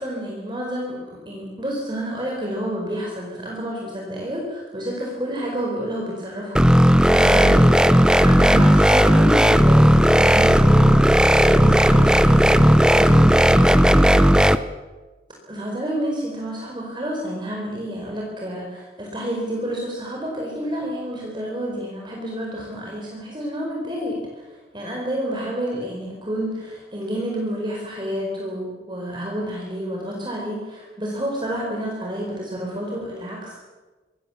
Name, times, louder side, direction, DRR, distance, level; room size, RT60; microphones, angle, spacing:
voice 1, 0.0-14.1 15.5-24.4 24.7-33.6, equal, 25° right, -2 dB, 4.9 m, -29 dB
sound 1, 6.6-14.6, equal, 5° right, 0.8 m, -14 dB
26.0 x 22.0 x 7.3 m, 1.3 s
head